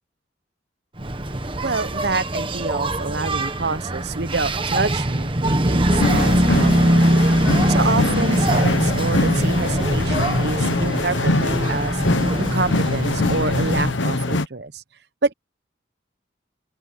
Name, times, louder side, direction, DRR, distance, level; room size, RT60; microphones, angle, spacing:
Engine, 1.0-14.0, right 1 dB, 25° right, 1.4 m, -22 dB
voice 1, 1.6-7.2 7.7-12.0 12.4-14.8 15.2-15.3, right 3 dB, 60° right, 0.9 m, -27 dB
sound 1, 5.9-14.5, left 2 dB, 80° left, 1.0 m, -23 dB
open air
head